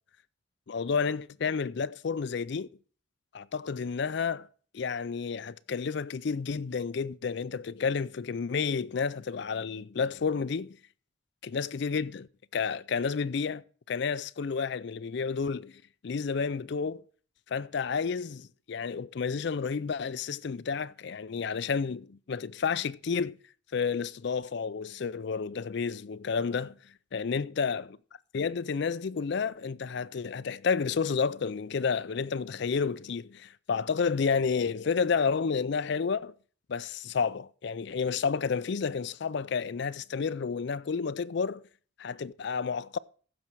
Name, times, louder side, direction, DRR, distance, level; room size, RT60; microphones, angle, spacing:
voice 1, 0.7-2.7 3.3-4.5 4.7-10.8 11.4-15.7 16.0-17.0 17.5-23.4 23.7-26.7 27.1-27.9 28.3-36.3 36.7-41.7 42.0-43.0, left 5 dB, 55° left, 0.4 m, -31 dB
15.5 x 6.3 x 4.5 m
head